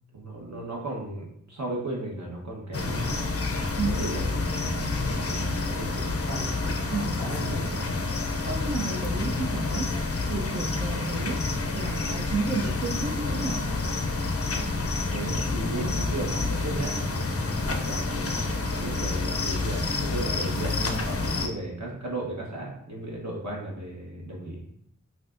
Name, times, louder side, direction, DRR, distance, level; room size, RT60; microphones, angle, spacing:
voice 1, 0.1-3.3 3.8-6.5 7.2-7.9 15.1-24.6, right 2 dB, 65° right, -3 dB, 1.2 m, -35 dB
sound 1, 2.7-21.5, left 3 dB, 50° left, 0.5 m, -28 dB
voice 2, 3.7-4.0 6.9-7.3 8.4-13.7, right 3 dB, 35° right, 2 dB, 0.4 m, -32 dB
5.7 x 2.4 x 2.5 m, 0.72 s
wide cardioid pair, 45°, 31 cm